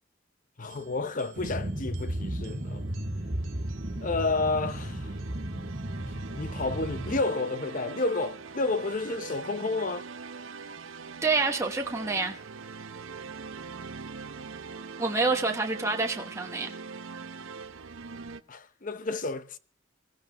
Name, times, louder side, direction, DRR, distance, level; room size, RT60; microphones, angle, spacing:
voice 1, 0.6-2.8 4.0-5.1 6.4-10.0 18.5-19.6, left 3 dB, 40° left, 0.8 m, -30 dB
sound 1, 0.7-18.4, right 5 dB, 80° right, 0.8 m, -43 dB
sound 2, 1.4-7.2, right 1 dB, 45° right, 1.8 m, -34 dB
voice 2, 11.2-12.4 15.0-16.7, right 3 dB, 15° right, 1.0 m, -27 dB
25.5 x 16.0 x 3.0 m
head